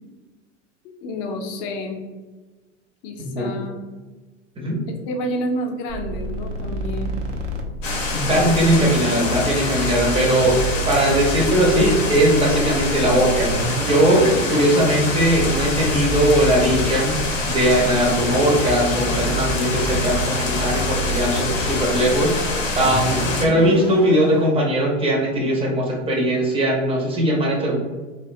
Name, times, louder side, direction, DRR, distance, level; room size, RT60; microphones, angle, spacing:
voice 1, 1.0-2.0 3.0-3.8 4.9-7.2 8.3-8.7, left 1 dB, 40° left, 3 dB, 0.5 m, -29 dB
voice 2, 3.2-3.5 4.6-4.8 8.1-10.6 10.9-17.2 17.4-27.7, right 1 dB, 15° right, -2 dB, 0.6 m, -19 dB
sound 1, 5.9-24.5, right 2 dB, 75° right, 0.6 m, -30 dB
sound 2, 7.8-23.4, left 3 dB, 85° left, 0.6 m, -25 dB
2.6 x 2.2 x 2.5 m, 1.3 s
hypercardioid pair, 90°, 37 cm